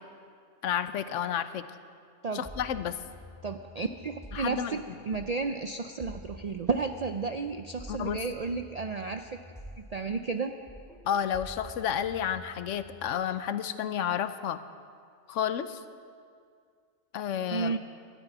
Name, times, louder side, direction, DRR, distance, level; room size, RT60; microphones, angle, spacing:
voice 1, 0.6-1.6 2.3-3.0 4.3-4.8 7.9-8.2 11.0-14.6 15.3-15.8 17.1-17.8, left 9 dB, 75° left, 12 dB, 1.0 m, -31 dB
sound 1, 2.4-5.5 6.0-10.4 10.7-13.1, equal, ahead, 1.7 m, -48 dB
voice 2, 3.4-4.8 5.1-9.3 9.8-10.5 17.5-17.8, right 4 dB, 60° right, 7 dB, 0.4 m, -32 dB
13.0 x 9.7 x 9.1 m, 2.2 s
omnidirectional pair, 1.3 m